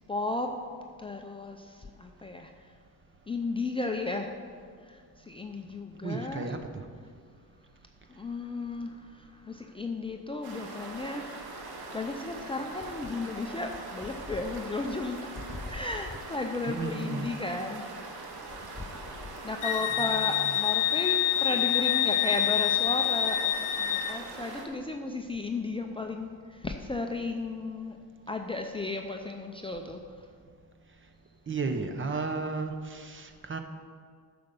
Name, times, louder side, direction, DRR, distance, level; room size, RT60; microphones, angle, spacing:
voice 1, 0.1-0.5 1.0-2.5 3.3-4.3 4.8-6.5 8.1-15.2 15.5-17.9 19.4-28.0 28.3-30.0, left 3 dB, 15° left, 3 dB, 0.5 m, -34 dB
voice 2, 6.0-6.8 16.7-17.3 20.0-20.4 31.5-33.6, right 4 dB, 30° right, 6 dB, 0.9 m, -34 dB
sound 1, 10.4-24.7, right 3 dB, 70° right, 1.7 m, -42 dB
Wind instrument woodwind instrument, 19.6-24.2, left 11 dB, 55° left, 0.7 m, -27 dB
10.0 x 6.7 x 5.3 m, 2.1 s
cardioid pair, 120°, 39 cm